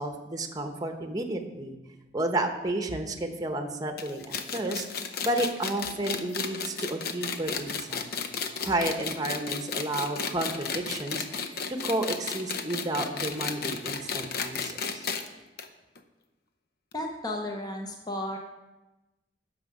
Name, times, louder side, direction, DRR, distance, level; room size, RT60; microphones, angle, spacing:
voice 1, 0.0-1.8 2.1-8.1 8.6-15.1, right 1 dB, 20° right, 5 dB, 0.9 m, -31 dB
sound 1, 4.0-15.3 15.6-15.7 16.0-16.1 16.9-17.0, left 5 dB, 55° left, 0.7 m, -33 dB
voice 2, 16.9-18.4, left 1 dB, 20° left, 2 dB, 0.8 m, -33 dB
9.7 x 6.4 x 5.3 m, 1.1 s
head